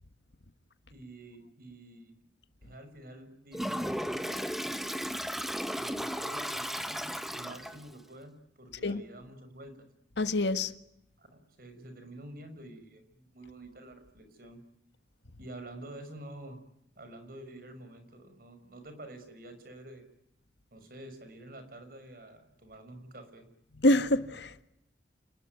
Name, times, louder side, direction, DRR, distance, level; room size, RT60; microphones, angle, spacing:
voice 1, 0.9-2.3 2.6-4.5 5.8-7.0 7.3-9.8 11.2-14.6 15.4-16.6 17.0-20.0 20.7-23.5, right 1 dB, 55° right, 5.8 m, -48 dB
Toilet flush, 3.5-7.9, equal, ahead, 1.4 m, -35 dB
voice 2, 10.2-10.7 23.8-24.6, left 1 dB, 75° left, 1.5 m, -26 dB
29.0 x 20.5 x 9.4 m
head